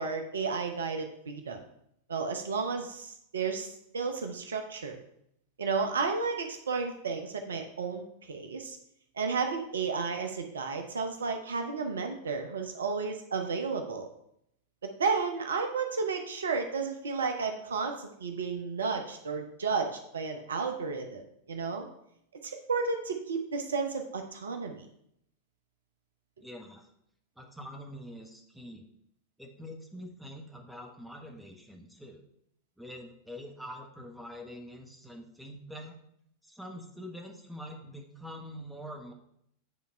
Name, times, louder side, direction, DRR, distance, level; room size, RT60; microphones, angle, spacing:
voice 1, 0.0-1.6 2.1-5.0 5.6-8.8 9.2-14.1 14.8-21.2 21.5-21.9 22.4-24.9, right 5 dB, 70° right, 5 dB, 0.9 m, -32 dB
voice 2, 26.4-26.9 27.4-28.8 29.4-32.2 32.8-36.0 36.4-39.1, equal, 5° right, 2 dB, 1.2 m, -45 dB
9.3 x 3.6 x 4.4 m, 0.74 s
figure-of-eight pair, 90°, 0 cm